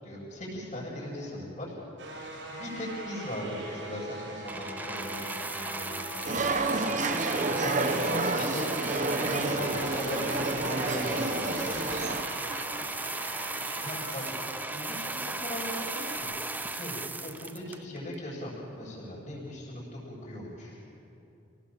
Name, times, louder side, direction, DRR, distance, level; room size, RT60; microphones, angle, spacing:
voice 1, 0.0-1.7 2.5-6.7 7.6-8.8 9.2-11.7 13.8-14.2 14.7-16.3 16.7-20.8, left 1 dB, 40° left, -8 dB, 7.2 m, -39 dB
sound 1, 2.0-16.2, right 2 dB, 80° right, 5.9 m, -41 dB
sound 2, 4.5-18.1 18.9-19.0, right 2 dB, 10° right, 0.6 m, -36 dB
voice 2, 6.1-7.4 8.0-8.1 9.5-14.1, left 1 dB, 20° left, -1 dB, 2.8 m, -48 dB
sound 3, 6.3-12.2, right 3 dB, 40° right, 1.2 m, -30 dB
28.5 x 18.5 x 7.3 m, 2.9 s
head